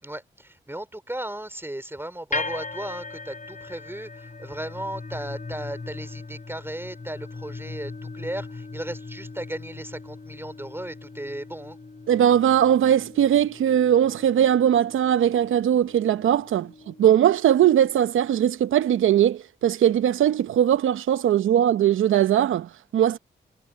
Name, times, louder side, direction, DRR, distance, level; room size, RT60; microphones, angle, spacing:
voice 1, 0.0-11.8, right 1 dB, 10° right, 3.5 m, -36 dB
sound 1, 2.3-18.5, left 3 dB, 40° left, 7.4 m, -39 dB
voice 2, 12.1-23.2, right 10 dB, 80° right, 0.8 m, -20 dB
supercardioid pair, 45°, 20 cm